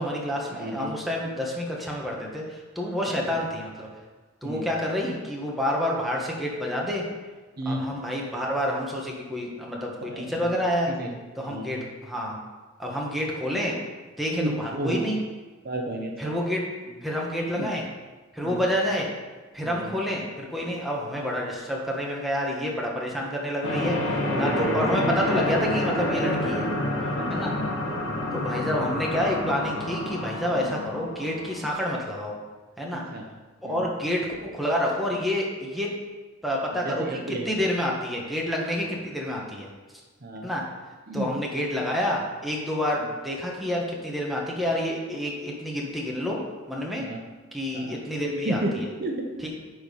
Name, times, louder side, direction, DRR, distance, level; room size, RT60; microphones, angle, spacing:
voice 1, 0.0-3.9 4.4-7.0 7.6-10.9 11.4-12.4 12.8-13.8 14.2-15.2 16.2-16.7 17.0-17.8 18.3-19.1 19.5-26.7 27.3-27.5 28.3-32.3 32.8-33.0 33.6-34.3 34.5-35.9 36.4-39.7 40.4-40.6 41.1-46.4 46.7-47.1 47.5-48.8 49.4-49.5, equal, ahead, -3 dB, 1.5 m, -28 dB
voice 2, 0.6-0.9 3.3-3.4 4.4-4.7 7.6-7.9 10.1-10.5 10.9-11.8 14.3-15.0 15.6-16.3 17.4-17.7 18.4-18.6 19.6-20.0 24.1-25.1 27.2-27.5 30.6-30.7 32.9-33.3 33.6-33.8 36.7-37.5 38.8-38.9 40.2-40.5 41.1-41.3 43.0-43.1 47.0-47.2 47.7-48.0 48.4-49.5, right 1 dB, 50° right, 2 dB, 0.9 m, -32 dB
sound 1, 23.6-31.7, left 1 dB, 80° left, 1.7 m, -28 dB
10.0 x 4.5 x 5.5 m, 1.3 s
head